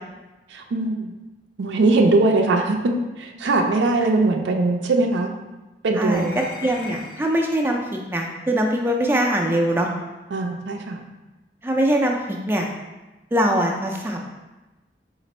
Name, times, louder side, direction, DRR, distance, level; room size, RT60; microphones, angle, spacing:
voice 1, 0.5-1.1 1.6-5.3 5.8-6.3 10.3-11.0, right 2 dB, 80° right, 3 dB, 0.4 m, -21 dB
voice 2, 6.0-6.3 6.6-9.9 11.6-12.7 13.3-14.2, right 1 dB, 10° right, 1 dB, 0.3 m, -22 dB
sound 1, 6.1-7.4 8.7-8.8 9.8-9.9, left 3 dB, 50° left, 0.6 m, -40 dB
4.0 x 2.5 x 4.1 m, 1.1 s
head